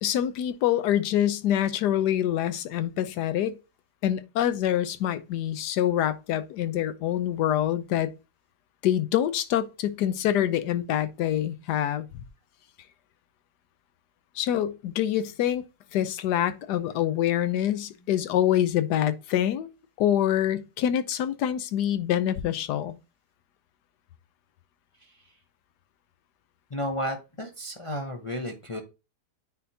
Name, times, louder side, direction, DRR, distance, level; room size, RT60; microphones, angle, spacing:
voice 1, 0.0-3.5 4.0-8.1 8.8-12.1 14.4-15.6 15.9-19.7 20.0-23.0, left 11 dB, 75° left, 1.2 m, -25 dB
voice 2, 26.7-28.8, equal, 40° left, 0.4 m, -32 dB
9.3 x 4.1 x 2.7 m
omnidirectional pair, 1.8 m